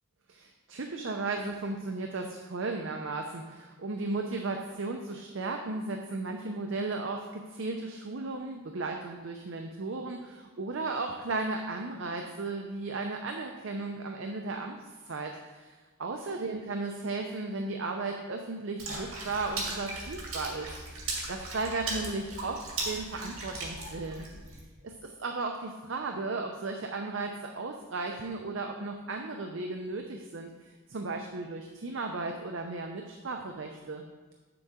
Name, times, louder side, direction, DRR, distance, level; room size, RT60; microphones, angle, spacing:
voice 1, 0.3-14.8 15.1-24.3 24.8-34.0, right 3 dB, 70° right, 3 dB, 0.6 m, -35 dB
Water / Splash splatter, 18.8-24.6, right 2 dB, 85° right, 2.1 m, -37 dB
7.9 x 6.9 x 3.7 m, 1.3 s
head